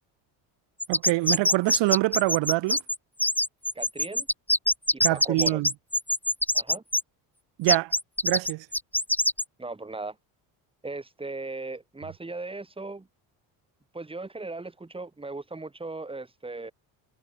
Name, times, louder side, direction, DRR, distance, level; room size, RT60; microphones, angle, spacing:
sound 1, 0.8-7.0 7.7-9.4, left 1 dB, 5° left, 2.7 m, -24 dB
voice 1, 0.9-2.8 5.0-5.7 7.6-7.9 8.2-8.7, right 20 dB, 80° right, 2.1 m, -25 dB
voice 2, 3.8-4.3 4.9-5.6 6.5-6.8 9.6-10.2 10.8-13.1 13.9-16.7, right 3 dB, 10° right, 3.4 m, -37 dB
cardioid pair, 110°, 43 cm